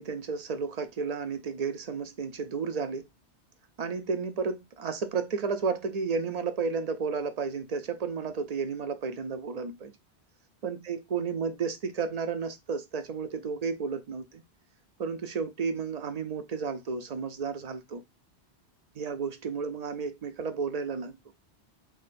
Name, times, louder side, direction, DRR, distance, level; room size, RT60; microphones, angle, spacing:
voice 1, 0.0-3.0 3.8-9.9 10.6-14.4 15.0-18.0 19.0-21.2, right 5 dB, 55° right, 0.4 m, -32 dB
4.8 x 2.4 x 2.5 m
omnidirectional pair, 1.1 m